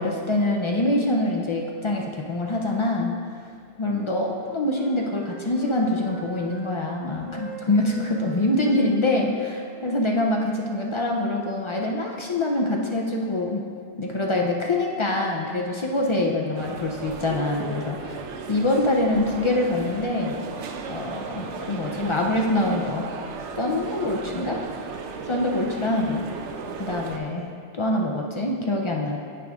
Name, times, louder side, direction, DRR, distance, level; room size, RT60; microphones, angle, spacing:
voice 1, 0.0-3.1 3.8-13.6 14.0-18.2 18.5-20.4 20.9-23.1 23.6-24.6 25.3-26.3 26.8-27.5 27.7-29.2, left 2 dB, 45° left, 0 dB, 0.4 m, -25 dB
Wind instrument woodwind instrument, 3.8-6.7 7.2-11.1, right 2 dB, 25° left, 1.0 m, -43 dB
sound 1, 16.5-27.2, right 5 dB, 85° right, 0.9 m, -35 dB
8.4 x 4.9 x 3.5 m, 2.3 s
omnidirectional pair, 1.2 m